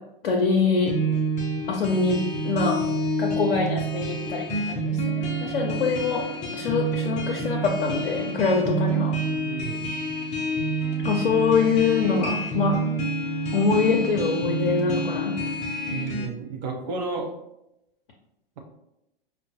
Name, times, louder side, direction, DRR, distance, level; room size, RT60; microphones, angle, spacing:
voice 1, 0.2-1.0 1.7-2.8 3.2-6.2 6.5-9.1 11.0-12.8 13.5-15.3, left 4 dB, 70° left, -1 dB, 0.6 m, -24 dB
sound 1, 0.9-16.3, right 2 dB, 25° left, 0.6 m, -28 dB
voice 2, 9.5-9.9 15.9-17.3, right 3 dB, 45° right, 2 dB, 0.6 m, -32 dB
5.1 x 2.1 x 2.7 m, 0.86 s
figure-of-eight pair, 105°, 30 cm